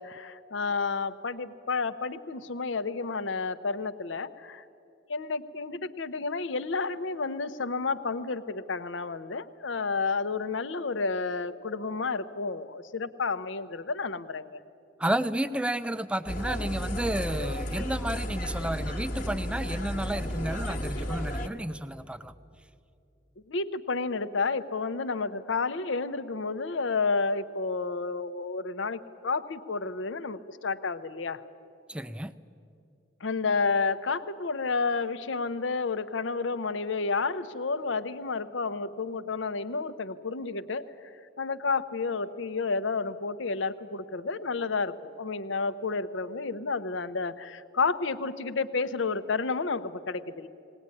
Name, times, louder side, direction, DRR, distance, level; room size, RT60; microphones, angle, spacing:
voice 1, 0.0-4.6 5.1-14.6 23.5-31.4 33.2-40.9 41.4-50.5, left 4 dB, 80° left, 12 dB, 0.8 m, -31 dB
voice 2, 15.0-22.3 31.9-32.3, right 1 dB, 5° right, 13 dB, 0.4 m, -31 dB
sound 1, 16.3-21.5, equal, 40° left, 1.3 m, -33 dB
19.0 x 19.0 x 9.7 m, 2.6 s
head